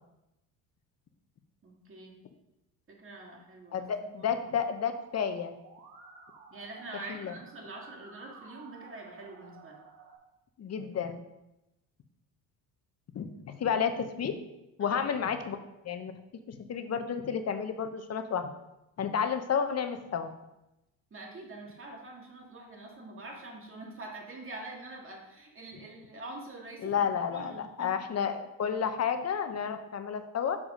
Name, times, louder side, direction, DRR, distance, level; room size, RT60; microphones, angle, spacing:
voice 1, 1.6-2.2 2.9-4.4 6.5-9.8 14.8-15.0 21.1-28.0, right 2 dB, 30° right, 0 dB, 2.2 m, -45 dB
voice 2, 3.7-5.5 7.2-7.3 10.6-11.2 13.1-14.4 14.8-15.6 15.8-16.1 16.5-18.5 19.0-20.3 26.8-30.6, left 7 dB, 35° left, 8 dB, 0.9 m, -31 dB
Musical instrument, 4.6-10.1, right 4 dB, 85° right, 1.6 m, -53 dB
7.1 x 4.7 x 5.0 m, 0.91 s
supercardioid pair, 85°, 42 cm